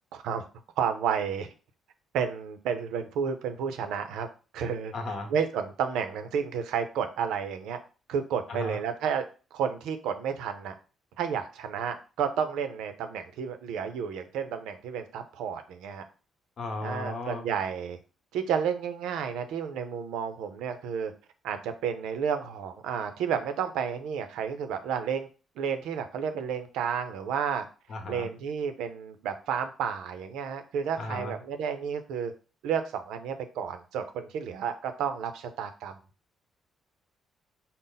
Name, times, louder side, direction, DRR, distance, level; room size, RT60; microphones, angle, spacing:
voice 1, 0.1-0.4 0.8-1.5 2.1-4.3 4.5-4.9 5.3-7.8 8.1-9.2 9.5-10.7 11.2-16.0 16.8-18.0 18.3-21.1 21.4-25.3 25.6-27.7 28.1-32.3 32.6-36.0, right 7 dB, 90° right, 7 dB, 0.5 m, -31 dB
voice 2, 4.9-5.3 8.5-8.8 16.6-17.5 27.9-28.3 31.0-31.3, left 2 dB, 55° left, 4 dB, 0.9 m, -35 dB
4.0 x 2.0 x 3.9 m, 0.35 s
cardioid pair, 90°, 0 cm